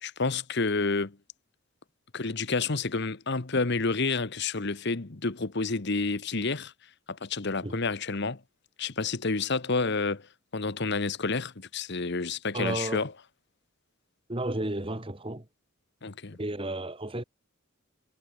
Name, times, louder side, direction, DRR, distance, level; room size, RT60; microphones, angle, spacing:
voice 1, 0.0-1.2 2.1-6.7 7.1-8.4 8.8-10.3 10.5-13.1 16.0-16.4, left 3 dB, 50° left, 1.1 m, -29 dB
voice 2, 12.5-13.0 14.3-15.4 16.4-17.2, right 1 dB, 25° right, 1.7 m, -32 dB
head